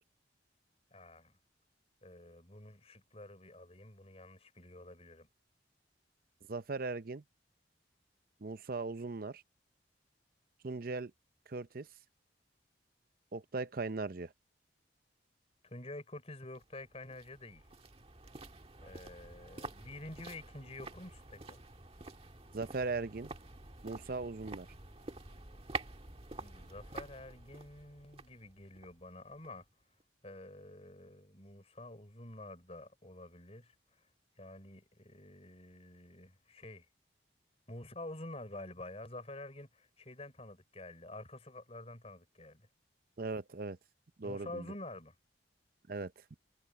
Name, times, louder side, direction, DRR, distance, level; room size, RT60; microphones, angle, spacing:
voice 1, 0.9-1.3 2.0-5.3 15.6-17.6 18.8-21.6 26.4-29.7 30.2-33.7 34.4-36.9 37.7-42.7 44.2-45.1, left 2 dB, 35° left, 4.5 m, -49 dB
voice 2, 6.5-7.2 8.4-9.4 10.6-11.1 11.5-11.9 13.3-14.3 22.5-23.3 23.8-24.7 43.2-43.8 44.2-44.7 45.9-46.1, right 3 dB, 50° right, 0.7 m, -38 dB
sound 1, 16.5-29.7 30.0-30.1, right 3 dB, 30° right, 1.8 m, -48 dB
head